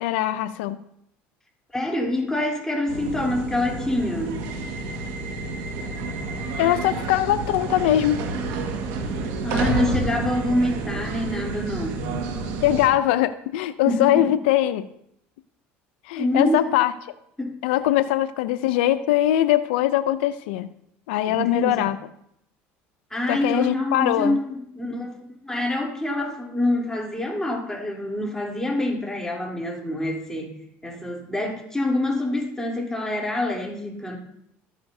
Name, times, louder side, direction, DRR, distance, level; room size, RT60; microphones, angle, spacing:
voice 1, 0.0-0.8 6.6-8.3 12.6-14.9 16.1-16.9 17.6-20.7 21.1-22.0 23.3-24.4, left 13 dB, 90° left, 13 dB, 0.4 m, -21 dB
voice 2, 1.7-4.5 9.4-12.1 13.9-14.3 16.2-16.7 17.4-17.6 21.3-21.9 23.1-25.2 25.4-30.6 30.8-34.2, left 1 dB, 10° left, -2 dB, 3.3 m, -26 dB
sound 1, 2.9-12.9, right 3 dB, 75° right, 1.6 m, -29 dB
13.5 x 9.5 x 2.7 m, 0.74 s
supercardioid pair, 100°, 6 cm